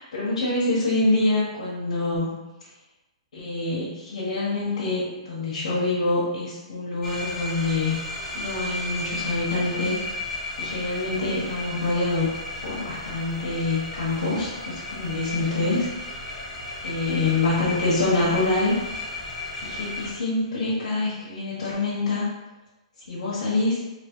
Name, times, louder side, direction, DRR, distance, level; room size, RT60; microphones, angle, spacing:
voice 1, 0.1-2.4 3.3-8.0 8.3-10.0 10.6-12.3 12.6-15.9 16.8-18.8 19.6-22.3 23.1-23.8, left 2 dB, 80° left, -8 dB, 1.3 m, -25 dB
sound 1, 7.0-20.1, left 2 dB, 10° right, 1.3 m, -34 dB
3.1 x 2.9 x 3.1 m, 1.1 s
hypercardioid pair, 165°, 4 cm